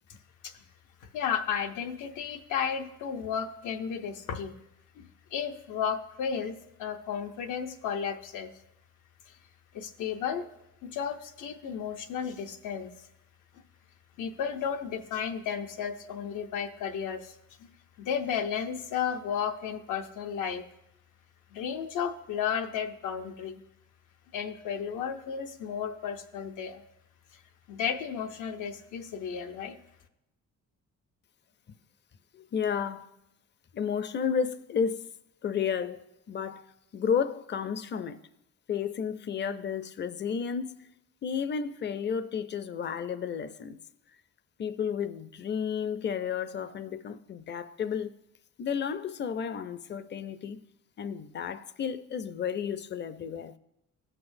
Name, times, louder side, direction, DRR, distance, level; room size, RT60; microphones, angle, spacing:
voice 1, 1.1-4.5 5.0-8.5 9.7-10.4 10.8-12.9 14.2-17.7 18.0-20.6 21.5-23.6 24.3-26.8 27.7-29.8, left 7 dB, 80° left, 0.8 m, -33 dB
voice 2, 32.3-33.1 33.7-35.1 35.4-36.7 36.9-38.2 38.7-40.9 41.2-43.8 44.6-48.2 48.6-50.6 51.0-53.5, left 7 dB, 35° left, 0.5 m, -32 dB
15.0 x 6.0 x 2.6 m
cardioid pair, 90°, 30 cm